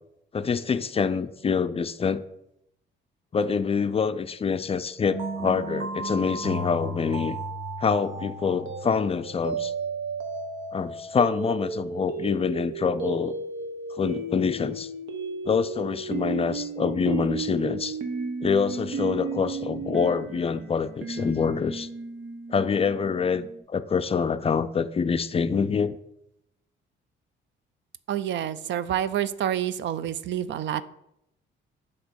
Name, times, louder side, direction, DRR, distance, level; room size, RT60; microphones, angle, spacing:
voice 1, 0.3-2.2 3.3-7.4 7.8-9.7 10.7-13.3 14.0-14.9 15.4-18.0 18.4-21.9 22.5-26.0, left 6 dB, 30° left, 12 dB, 0.4 m, -26 dB
sound 1, 5.1-23.6, right 4 dB, 90° right, 1.0 m, -34 dB
voice 2, 28.1-30.8, right 10 dB, 65° right, 15 dB, 0.4 m, -28 dB
7.9 x 2.9 x 6.2 m, 0.82 s
cardioid pair, 90°, 20 cm